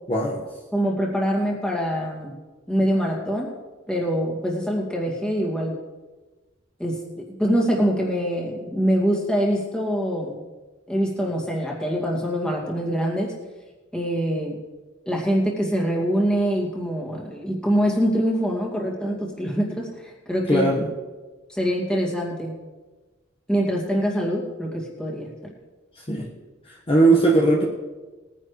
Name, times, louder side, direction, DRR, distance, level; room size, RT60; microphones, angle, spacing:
voice 1, 0.1-0.4 20.5-20.9 26.0-26.3 26.7-27.6, right 2 dB, 30° left, -3 dB, 1.5 m, -19 dB
voice 2, 0.7-2.3 2.7-3.5 3.9-5.8 6.8-10.4 10.9-13.3 13.9-14.6 15.1-20.7 21.5-22.6 23.5-25.5, equal, 5° left, -2 dB, 2.3 m, -24 dB
20.5 x 10.0 x 3.3 m, 1.3 s
head